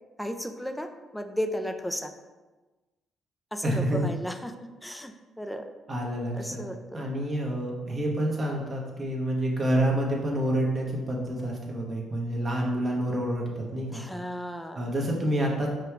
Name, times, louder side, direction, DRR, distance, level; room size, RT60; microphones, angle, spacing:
voice 1, 0.2-2.1 3.5-4.5 4.8-5.7 6.3-7.0 13.9-14.8, equal, 5° left, 7 dB, 0.4 m, -34 dB
voice 2, 3.6-4.1 5.9-6.6 6.9-14.0 14.7-15.7, right 1 dB, 40° right, -2 dB, 0.9 m, -28 dB
4.9 x 2.3 x 4.5 m, 1.2 s
cardioid pair, 90°, 0 cm